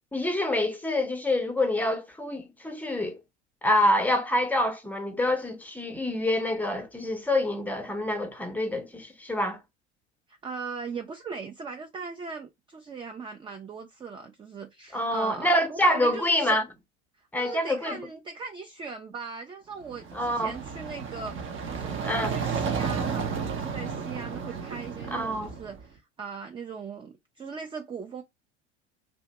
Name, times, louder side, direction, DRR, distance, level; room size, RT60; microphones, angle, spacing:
voice 1, 0.1-3.2 3.6-9.6 14.9-16.6 17.3-18.0 20.1-20.5 22.0-22.3 25.1-25.5, left 1 dB, 5° left, 0.8 m, -26 dB
voice 2, 10.3-16.6 17.2-28.2, right 5 dB, 15° right, 0.4 m, -39 dB
sound 1, 19.8-25.8, right 6 dB, 35° right, 0.7 m, -33 dB
2.5 x 2.2 x 3.9 m
hypercardioid pair, 80°, 35 cm